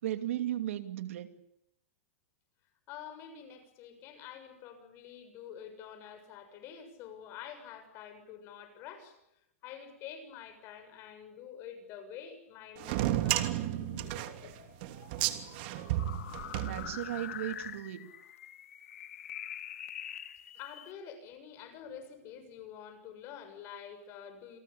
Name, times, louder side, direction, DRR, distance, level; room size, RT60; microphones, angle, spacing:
voice 1, 0.0-1.4 16.6-18.1, right 13 dB, 70° right, 9 dB, 2.7 m, -36 dB
voice 2, 2.9-9.2 9.6-13.7 20.6-24.6, left 8 dB, 35° left, 9 dB, 6.9 m, -47 dB
sound 1, 12.8-17.4, right 14 dB, 45° right, 2.9 m, -33 dB
sound 2, 13.5-20.9, left 10 dB, 85° left, 2.8 m, -45 dB
29.0 x 21.5 x 8.6 m, 0.85 s
supercardioid pair, 160°, 7 cm